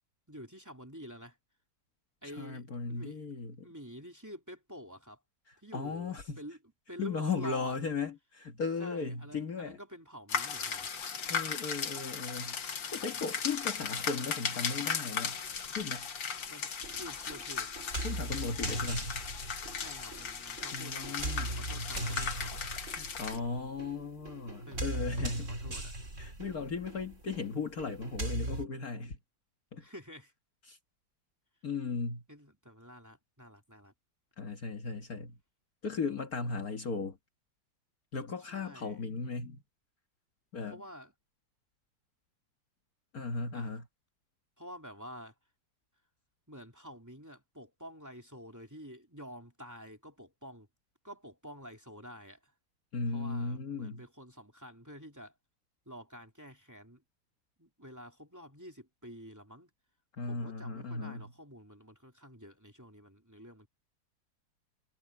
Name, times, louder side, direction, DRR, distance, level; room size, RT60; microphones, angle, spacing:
voice 1, 0.3-1.4 2.2-3.2 3.6-5.2 5.6-6.6 6.9-7.8 8.8-10.9 16.5-17.7 18.7-18.9 19.8-21.2 21.5-22.6 24.7-26.1 29.0-29.1 29.8-30.3 32.3-33.9 38.5-39.0 40.7-41.1 43.5-43.7 44.6-45.3 46.5-50.7 51.0-52.4 53.1-55.3 55.9-57.0 57.6-59.7 60.2-63.7, equal, 10° right, 2.9 m, -49 dB
voice 2, 2.4-3.7 5.5-6.4 7.0-9.8 11.3-12.6 12.9-15.4 15.8-16.1 18.0-19.1 20.7-21.6 22.9-25.5 26.2-29.2 29.7-29.8 30.7-30.8 31.6-32.2 34.4-35.4 35.8-37.2 38.1-39.6 40.5-40.8 43.1-43.8 52.9-54.0 60.2-61.3, left 4 dB, 50° left, 2.0 m, -36 dB
sound 1, 10.3-23.4, left 6 dB, 75° left, 2.5 m, -37 dB
sound 2, 16.8-28.7, right 2 dB, 40° right, 4.3 m, -39 dB
omnidirectional pair, 2.1 m